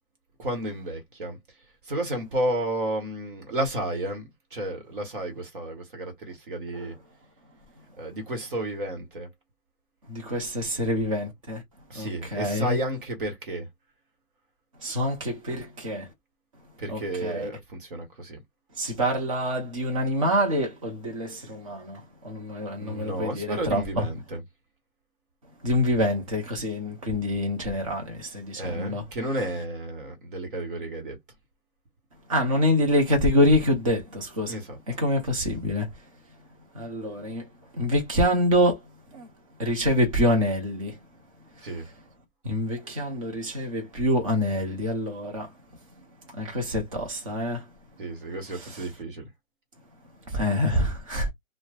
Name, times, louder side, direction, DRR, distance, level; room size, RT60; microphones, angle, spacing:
voice 1, 0.4-1.4 1.9-7.0 8.0-9.3 11.9-13.7 16.8-18.4 22.8-24.4 28.6-31.2 34.5-34.8 41.6-41.9 48.0-49.3, right 1 dB, 40° right, 1.1 m, -32 dB
voice 2, 10.1-11.6 11.9-12.8 14.8-16.1 16.9-17.5 18.8-24.1 25.6-29.0 32.3-34.6 34.9-35.9 36.7-37.5 37.7-38.8 39.1-39.3 39.6-41.0 42.4-45.5 46.3-47.6 48.5-48.8 50.3-51.3, equal, 25° right, 0.8 m, -26 dB
3.0 x 2.1 x 2.3 m
hypercardioid pair, 155°, 40 cm